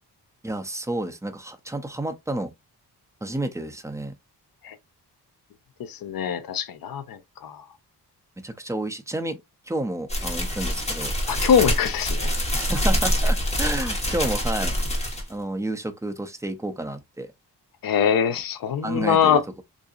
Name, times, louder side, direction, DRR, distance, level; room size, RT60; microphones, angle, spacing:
voice 1, 0.4-2.5 3.2-4.1 8.4-9.4 9.7-11.1 12.5-14.8 15.3-17.3 18.8-19.6, right 1 dB, 10° right, 0.5 m, -30 dB
voice 2, 5.9-7.6 11.3-12.3 17.8-19.4, left 8 dB, 60° left, 0.6 m, -23 dB
sound 1, 10.1-15.3, equal, 15° left, 1.2 m, -25 dB
3.7 x 2.7 x 2.4 m
wide cardioid pair, 130°, 40 cm